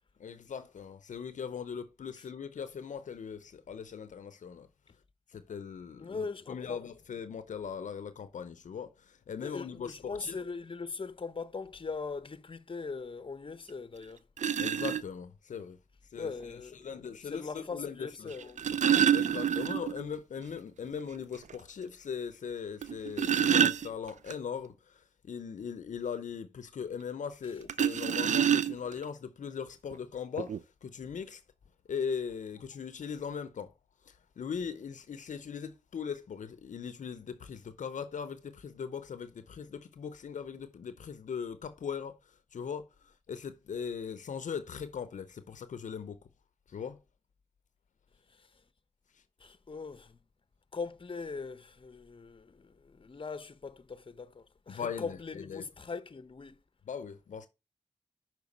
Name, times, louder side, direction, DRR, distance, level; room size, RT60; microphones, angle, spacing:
voice 1, 0.2-4.7 5.3-10.4 14.6-15.8 16.1-18.3 19.1-31.4 31.9-33.7 34.1-42.2 42.5-46.2 46.7-47.0 54.7-55.7 56.9-57.5, left 6 dB, 85° left, 0.6 m, -39 dB
voice 2, 6.0-6.9 9.4-14.2 16.2-19.0 48.3-48.5 49.4-50.2 50.7-56.6, left 4 dB, 45° left, 0.7 m, -41 dB
sound 1, 13.7-13.8 14.4-15.0 16.4-16.5 18.3-20.0 20.4-20.5 20.9-21.0 21.5-21.6 22.8-24.3 27.7-29.0 29.9-30.0 30.4-30.6, right 9 dB, 75° right, 0.4 m, -27 dB
5.9 x 4.6 x 5.3 m
cardioid pair, 45°, 13 cm